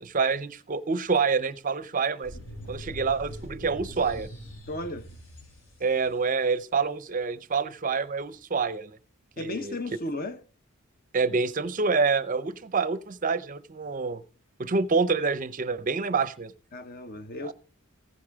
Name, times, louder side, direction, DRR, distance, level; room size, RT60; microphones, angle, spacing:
voice 1, 0.0-2.3 2.7-4.3 5.8-9.0 9.4-9.8 11.1-14.2 14.6-16.5 17.4-17.5, right 4 dB, 40° right, 0.6 m, -27 dB
sound 1, 2.2-6.2, equal, 80° left, 5.3 m, -43 dB
voice 2, 4.7-5.2 9.4-10.4 16.7-17.5, left 1 dB, 45° left, 0.9 m, -35 dB
15.0 x 9.9 x 3.5 m
head